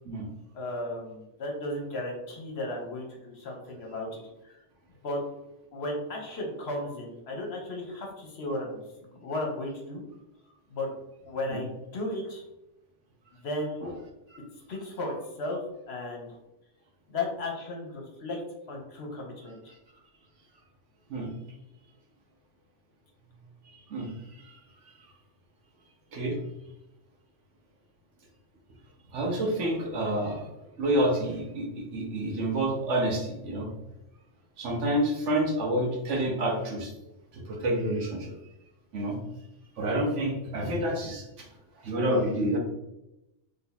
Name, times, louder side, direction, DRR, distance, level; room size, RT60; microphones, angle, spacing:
voice 1, 0.5-4.5 5.0-5.2 5.7-10.0 10.7-10.9 11.3-12.4 13.3-13.8 14.7-16.4 17.1-18.4 18.7-19.6, left 2 dB, 65° left, 0 dB, 1.1 m, -35 dB
voice 2, 23.6-24.6 26.1-26.4 29.1-30.5 30.8-33.7 34.6-36.9 37.3-38.4 38.9-39.2 39.8-41.5 41.8-42.6, right 1 dB, 85° right, 0 dB, 1.2 m, -29 dB
3.3 x 2.8 x 4.0 m, 0.92 s
omnidirectional pair, 1.2 m